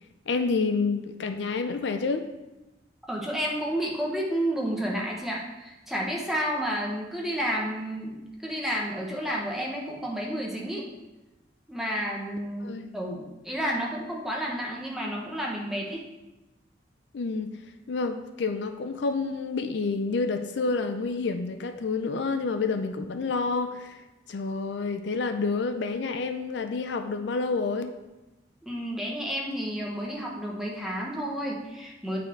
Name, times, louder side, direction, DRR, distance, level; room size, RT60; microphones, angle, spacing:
voice 1, 0.3-2.2 12.6-12.9 17.1-17.5 17.9-24.0 24.3-27.9, left 4 dB, 65° left, 8 dB, 0.4 m, -29 dB
voice 2, 3.1-10.9 11.7-16.0 28.7-32.2, equal, ahead, -2 dB, 1.1 m, -31 dB
8.9 x 4.2 x 4.5 m, 1.0 s
head